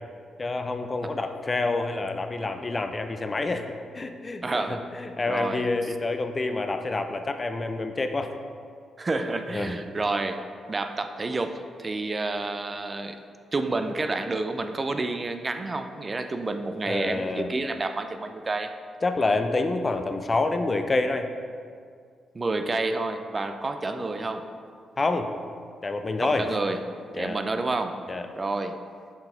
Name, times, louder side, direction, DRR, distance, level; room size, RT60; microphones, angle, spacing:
voice 1, 0.4-3.7 3.9-8.3 9.5-9.8 16.8-17.5 19.0-21.3 25.0-25.3 25.8-26.5 27.1-27.4 28.1-28.3, left 3 dB, 35° left, 7 dB, 0.5 m, -27 dB
voice 2, 4.4-4.8 5.3-5.7 9.0-10.4 10.7-13.2 13.5-18.7 22.3-24.5 26.2-26.8 27.2-28.0 28.3-28.8, right 2 dB, 35° right, 8 dB, 0.4 m, -29 dB
7.1 x 3.9 x 3.8 m, 2.1 s
supercardioid pair, 50°, 0 cm